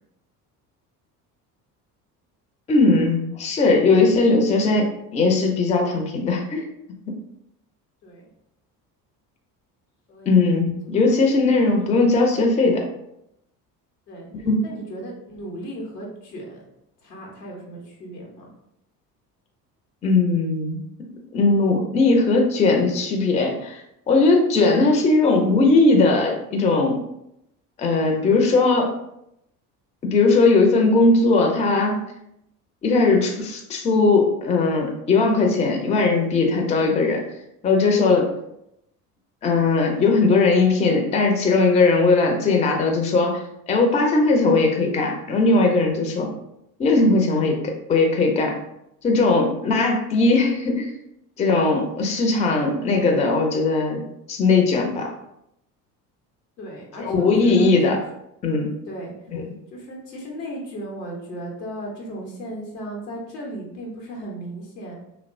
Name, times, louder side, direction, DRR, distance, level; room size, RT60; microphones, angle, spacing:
voice 1, 2.7-6.6 10.3-12.8 14.4-14.6 20.0-20.8 21.3-23.8 24.1-27.0 27.8-28.9 30.0-32.0 32.8-37.2 37.6-38.3 39.4-46.3 46.8-48.6 49.0-50.9 51.4-54.0 54.3-55.1 57.0-58.0 58.4-58.7 59.3-59.4, left 3 dB, 15° left, 2 dB, 0.4 m, -19 dB
voice 2, 10.1-11.3 11.6-12.0 14.1-14.3 14.6-16.6 17.0-18.5 56.6-58.1 58.9-59.1 59.7-65.0, equal, 85° left, -1 dB, 0.8 m, -36 dB
2.8 x 2.1 x 2.5 m, 0.80 s
hypercardioid pair, 60°, 48 cm